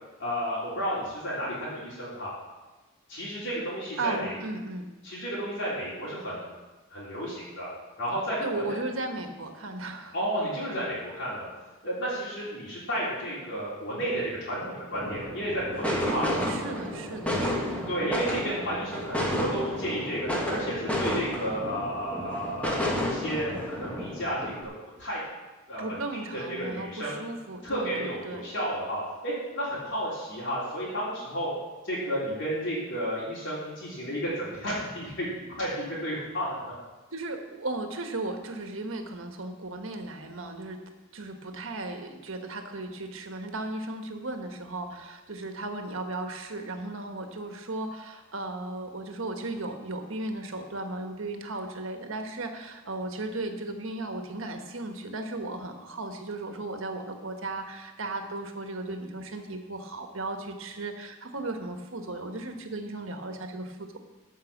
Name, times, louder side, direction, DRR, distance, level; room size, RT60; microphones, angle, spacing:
voice 1, 0.2-2.3 3.1-4.3 5.0-6.5 6.9-7.7 8.0-8.8 10.1-11.5 11.8-16.2 17.9-24.7 25.0-25.2 25.7-25.8 26.2-27.2 27.6-31.5 31.8-35.3 35.6-36.7, equal, 60° left, -8 dB, 3.5 m, -32 dB
voice 2, 4.0-4.9 8.4-10.1 16.0-17.9 25.8-28.5 37.1-40.8 41.1-64.0, right 2 dB, 65° right, 5 dB, 1.4 m, -36 dB
sound 1, 14.9-24.6, equal, 5° left, 1.6 m, -31 dB
13.5 x 5.6 x 7.2 m, 1.2 s
head